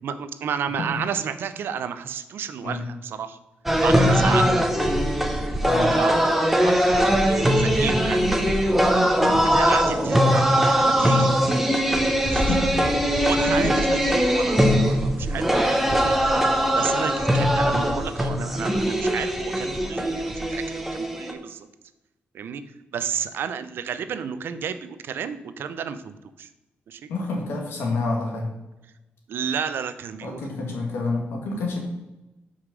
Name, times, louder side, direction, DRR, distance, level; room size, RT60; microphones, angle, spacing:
voice 1, 0.0-3.4 3.8-5.2 5.7-8.6 9.4-11.4 12.3-16.2 16.7-21.7 22.3-22.6 22.9-26.5 26.9-27.1 29.3-30.4, right 7 dB, 70° right, 11 dB, 0.6 m, -32 dB
sound 1, 3.7-21.3, equal, 5° right, 0.9 m, -21 dB
voice 2, 5.6-6.0 9.2-9.5 12.4-13.0 13.3-13.7 27.1-28.5 30.2-31.8, left 3 dB, 85° left, 1 dB, 1.9 m, -28 dB
5.5 x 4.9 x 6.1 m, 1.0 s
cardioid pair, 115°, 4 cm